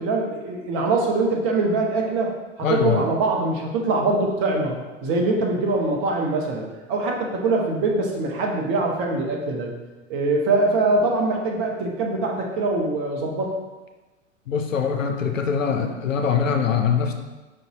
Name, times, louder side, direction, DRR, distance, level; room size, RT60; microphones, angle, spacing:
voice 1, 0.0-2.3 2.7-9.7 10.1-13.5, right 3 dB, 40° right, 1 dB, 0.8 m, -23 dB
voice 2, 2.6-3.1 14.5-17.1, left 6 dB, 80° left, 5 dB, 0.5 m, -23 dB
5.1 x 2.7 x 2.9 m, 1.2 s
figure-of-eight pair, 90°, 39 cm